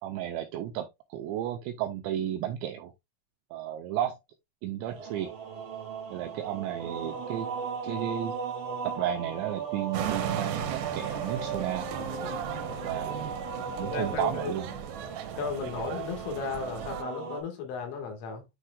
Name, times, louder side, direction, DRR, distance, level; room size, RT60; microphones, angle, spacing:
voice 1, 0.0-2.9 3.5-4.2 4.6-5.3 6.1-7.5 7.8-8.3 8.8-11.9 12.8-13.3 13.8-14.6, right 11 dB, 90° right, 2.6 m, -33 dB
sound 1, 4.8-17.4, right 5 dB, 45° right, 1.6 m, -37 dB
sound 2, 9.9-17.0, right 8 dB, 75° right, 2.8 m, -37 dB
voice 2, 13.8-14.6 15.4-18.5, left 5 dB, 75° left, 4.1 m, -35 dB
10.0 x 4.5 x 2.3 m
omnidirectional pair, 5.9 m